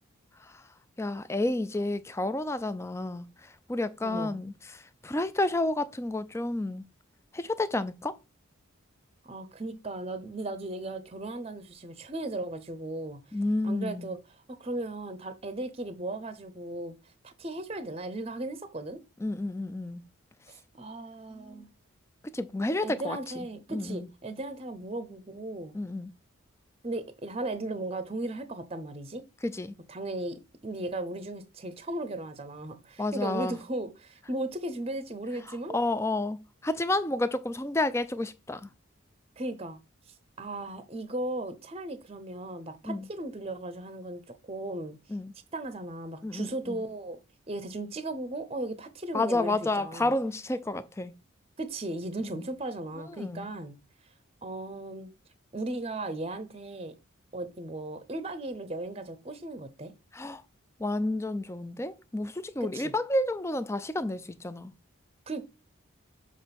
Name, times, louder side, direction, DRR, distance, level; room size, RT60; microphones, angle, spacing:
voice 1, 1.0-6.9 7.3-8.2 13.3-14.1 19.2-20.0 21.3-21.6 22.3-24.1 25.7-26.1 29.4-29.7 33.0-33.6 35.7-38.7 42.8-43.1 45.1-45.3 46.2-46.8 49.1-51.1 52.3-52.4 53.1-53.5 60.1-60.4 60.8-64.7, left 2 dB, 15° left, 0.4 m, -31 dB
voice 2, 4.0-4.4 9.2-13.2 13.6-14.2 14.6-16.9 17.2-19.0 20.5-21.7 22.8-25.8 26.8-29.2 29.9-35.8 39.4-39.8 40.4-45.0 45.5-47.2 47.5-50.1 51.6-53.8 54.4-55.1 55.5-56.9 57.3-59.9 62.6-62.9 65.3-65.5, right 2 dB, 30° right, 0.7 m, -36 dB
7.1 x 3.1 x 5.8 m
head